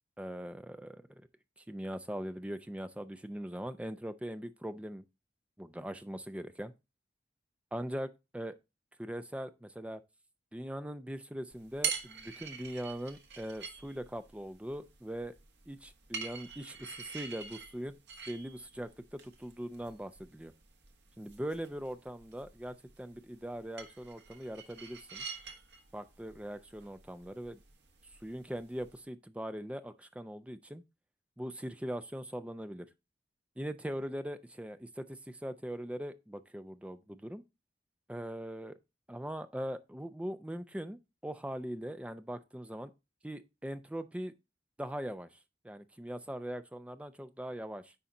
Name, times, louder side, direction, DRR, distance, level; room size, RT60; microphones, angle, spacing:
voice 1, 0.2-1.3 1.7-5.0 5.6-6.7 7.7-8.6 9.0-10.0 10.5-15.3 15.7-18.0 18.3-20.5 21.2-25.3 25.9-27.6 28.2-30.8 31.4-32.9 33.6-37.4 38.1-38.8 39.1-42.9 43.2-44.3 44.8-45.4 45.6-47.9, equal, 5° right, 0.5 m, -41 dB
sound 1, 11.5-29.0, right 6 dB, 80° right, 1.5 m, -46 dB
10.0 x 4.2 x 3.7 m
head